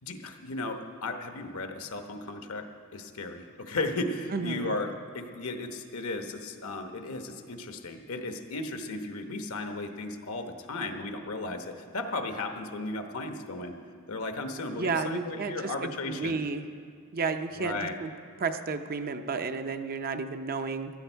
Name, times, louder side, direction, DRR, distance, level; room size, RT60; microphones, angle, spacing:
voice 1, 0.0-13.8 14.1-16.4 17.5-18.0, left 2 dB, 70° left, 6 dB, 1.1 m, -35 dB
voice 2, 4.3-4.7 14.7-16.6 17.1-18.1 18.4-20.9, right 4 dB, 45° right, 7 dB, 0.6 m, -32 dB
16.5 x 12.5 x 4.5 m, 2.2 s
head